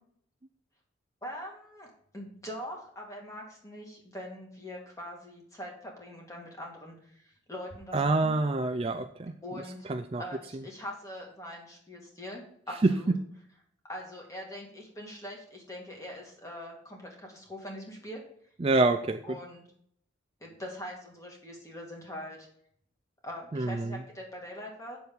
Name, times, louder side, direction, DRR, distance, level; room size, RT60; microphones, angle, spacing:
voice 1, 1.2-8.4 9.4-9.9 10.2-13.1 13.9-18.2 19.2-19.7 20.4-22.5 23.2-25.0, equal, 15° left, 0 dB, 2.2 m, -42 dB
voice 2, 7.9-9.3 9.9-10.2 12.8-13.1 18.6-19.4 23.5-23.9, right 2 dB, 30° right, 8 dB, 0.4 m, -26 dB
8.1 x 7.0 x 5.4 m, 0.65 s
head